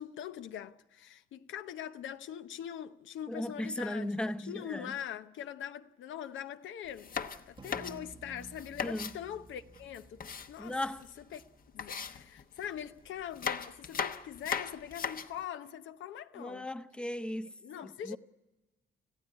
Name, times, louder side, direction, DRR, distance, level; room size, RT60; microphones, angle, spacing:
voice 1, 0.0-7.2 7.5-10.2 10.5-10.8 11.3-11.4 11.7-16.7 17.6-18.2, left 10 dB, 75° left, 0.8 m, -42 dB
voice 2, 3.3-4.9 8.8-9.1 10.6-11.1 16.4-17.5 17.8-18.2, left 1 dB, 5° left, 0.8 m, -36 dB
sound 1, 6.9-9.2 9.7-11.1 11.3-11.4 11.8-12.8 13.2-15.4, left 6 dB, 45° left, 1.1 m, -38 dB
sound 2, 7.6-12.2, right 4 dB, 25° right, 1.0 m, -54 dB
26.0 x 15.0 x 9.6 m
cardioid pair, 90°, 20 cm